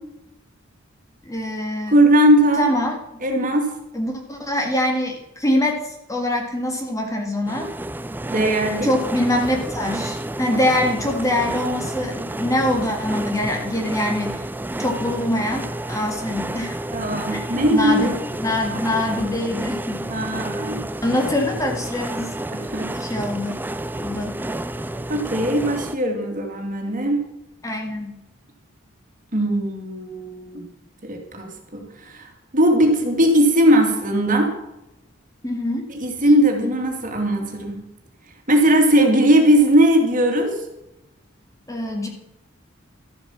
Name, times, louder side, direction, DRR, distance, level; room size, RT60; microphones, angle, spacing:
voice 1, 1.2-2.0 2.6-2.9 3.9-7.7 8.8-14.4 14.8-16.8 17.3-18.1 18.4-20.1 21.0-22.3 22.9-23.5 24.0-24.4 27.6-28.1 35.4-35.9 41.7-42.1, left 1 dB, 15° left, 2 dB, 1.8 m, -24 dB
voice 2, 1.9-2.7 3.2-3.7 8.3-8.9 16.9-18.2 20.1-20.8 22.5-22.9 25.1-27.2 29.3-30.6 31.0-34.5 35.9-37.8 38.5-40.6, right 1 dB, 40° right, 3 dB, 2.7 m, -19 dB
dishwasher harmonics, 7.5-26.0, right 1 dB, 10° right, 0.4 m, -30 dB
13.5 x 8.0 x 7.4 m, 0.89 s
head